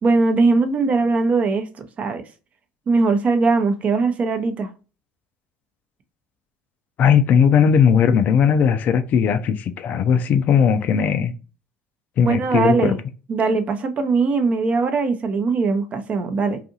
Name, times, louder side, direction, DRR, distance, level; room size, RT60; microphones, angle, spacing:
voice 1, 0.0-2.2 2.9-4.7 12.2-13.0 13.3-16.6, right 4 dB, 40° right, 0.6 m, -20 dB
voice 2, 7.0-11.3 12.2-13.0, left 7 dB, 50° left, 0.4 m, -17 dB
2.6 x 2.4 x 2.6 m
hypercardioid pair, 65°, 4 cm